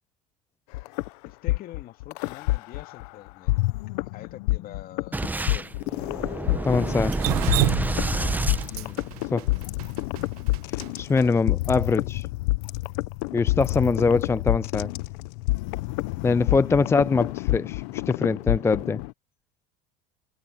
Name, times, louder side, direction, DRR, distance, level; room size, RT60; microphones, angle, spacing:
sound 1, 0.7-3.1 3.5-19.1, left 21 dB, 75° left, 1.1 m, -28 dB
voice 1, 1.2-3.7 4.0-5.7 8.1-8.3 8.7-9.1 11.1-11.4 13.5-13.8, left 13 dB, 50° left, 2.4 m, -45 dB
Boom, 5.1-9.5, right 2 dB, 10° right, 0.9 m, -28 dB
voice 2, 6.6-7.2 9.3-9.5 11.0-12.3 13.3-14.9 16.2-19.0, left 4 dB, 15° left, 0.4 m, -23 dB
Drip, 7.1-11.2, right 20 dB, 90° right, 1.2 m, -29 dB
supercardioid pair, 105°, 19 cm